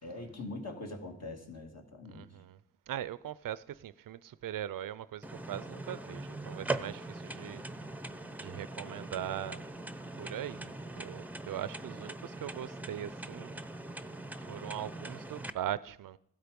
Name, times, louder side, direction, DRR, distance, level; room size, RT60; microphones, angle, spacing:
voice 1, 0.0-2.3, left 2 dB, 50° left, 2.2 m, -43 dB
voice 2, 2.1-2.6 2.9-7.6 8.4-9.7 10.2-13.6 14.3-16.2, right 11 dB, 90° right, 0.5 m, -40 dB
sound 1, 5.2-15.5, right 2 dB, 5° right, 0.6 m, -41 dB
15.5 x 12.5 x 5.2 m
wide cardioid pair, 90°, 32 cm